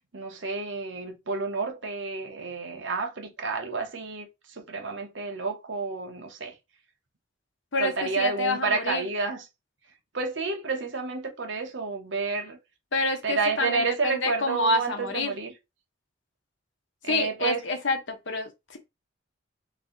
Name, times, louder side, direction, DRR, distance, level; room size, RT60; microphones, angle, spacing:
voice 1, 0.1-6.5 7.8-9.5 10.1-12.6 13.2-15.5 17.0-17.6, right 4 dB, 70° right, 1.0 m, -30 dB
voice 2, 7.7-9.1 12.9-15.3 17.0-18.8, left 2 dB, 75° left, 1.0 m, -28 dB
3.2 x 2.8 x 3.8 m
head